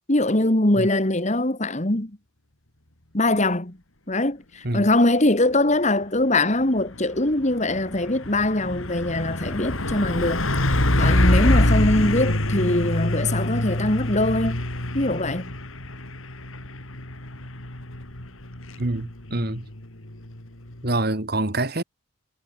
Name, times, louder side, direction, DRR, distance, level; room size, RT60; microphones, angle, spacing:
voice 1, 0.1-2.1 3.1-3.8 4.1-14.6 14.9-15.5, left 1 dB, 35° left, 2.2 m, -22 dB
Truck, 6.6-20.9, left 1 dB, 85° left, 3.9 m, -25 dB
voice 2, 18.8-19.7 20.8-21.8, right 2 dB, 50° right, 2.3 m, -26 dB
head